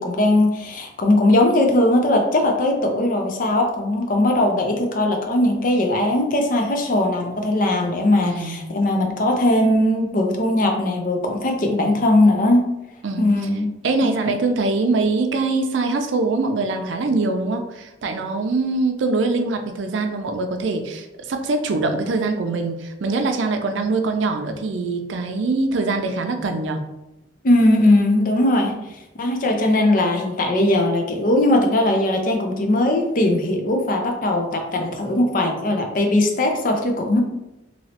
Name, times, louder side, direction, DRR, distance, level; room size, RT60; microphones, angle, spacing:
voice 1, 0.0-12.7 13.2-13.7 14.0-14.3 27.4-28.7 29.2-37.2, left 1 dB, 50° left, 3 dB, 0.5 m, -19 dB
voice 2, 8.2-8.6 13.0-13.3 13.8-26.8 28.6-28.8, right 3 dB, 85° right, 5 dB, 0.4 m, -23 dB
3.1 x 2.7 x 2.8 m, 0.94 s
head